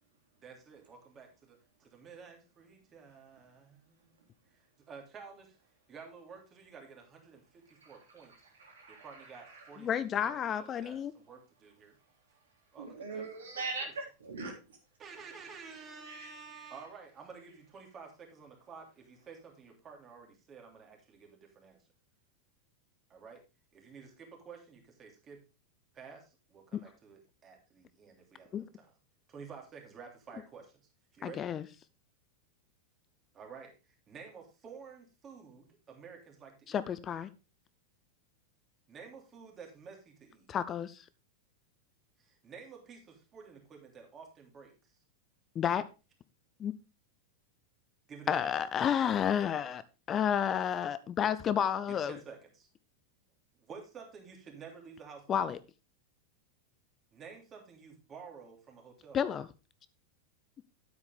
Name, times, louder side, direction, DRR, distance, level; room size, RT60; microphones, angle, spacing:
voice 1, 0.4-4.2 4.8-5.5 5.9-8.3 8.9-9.9 10.2-11.9 12.7-13.9 15.0-21.8 23.1-23.4 23.7-25.4 25.9-28.9 29.3-30.7 31.1-31.5 33.3-33.8 34.1-36.8 38.9-40.5 42.2-45.0 48.1-48.6 51.9-52.7 53.6-55.5 57.1-59.3, right 5 dB, 30° right, 3.1 m, -51 dB
voice 2, 8.5-9.7 12.8-14.8 16.1-16.3, right 3 dB, 75° right, 3.1 m, -41 dB
voice 3, 9.8-11.1 26.7-26.8 28.5-28.6 31.2-31.6 36.7-37.3 40.5-41.0 45.6-45.8 46.6-46.7 48.3-49.8 50.1-52.2 55.3-55.6 59.1-59.5, left 8 dB, 30° left, 0.6 m, -31 dB
9.7 x 8.3 x 3.5 m
figure-of-eight pair, 90°, 0 cm